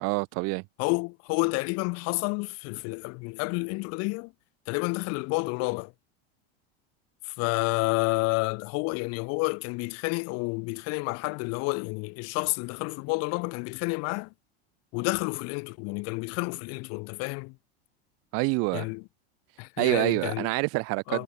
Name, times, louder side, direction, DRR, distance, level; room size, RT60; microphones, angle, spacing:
voice 1, 0.0-0.6 18.3-18.9 19.8-21.2, right 27 dB, 50° right, 0.7 m, -26 dB
voice 2, 0.8-4.3 4.7-5.9 7.2-14.3 14.9-17.6 18.7-19.0 19.6-20.5 21.1-21.2, left 30 dB, 50° left, 0.8 m, -30 dB
supercardioid pair, 125°, 31 cm